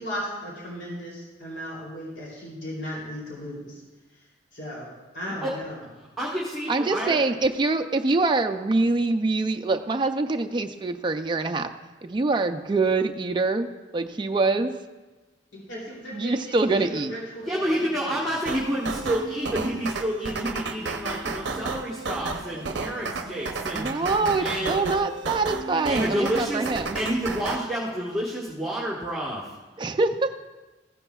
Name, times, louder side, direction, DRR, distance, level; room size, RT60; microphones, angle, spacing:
voice 1, 0.0-3.7 4.5-4.9 5.1-5.8 15.5-18.0, equal, 70° left, -5 dB, 2.9 m, -36 dB
voice 2, 6.0-7.2 17.4-24.1 24.4-24.8 25.9-26.7 26.9-29.5, equal, ahead, -7 dB, 1.3 m, -29 dB
voice 3, 6.7-11.7 12.0-13.7 13.9-14.7 16.1-17.2 23.7-27.0 29.8-30.4, right 3 dB, 25° right, 6 dB, 0.4 m, -24 dB
sound 1, 18.5-27.6, right 4 dB, 65° right, 0.6 m, -32 dB
15.0 x 9.8 x 2.3 m, 1.2 s
head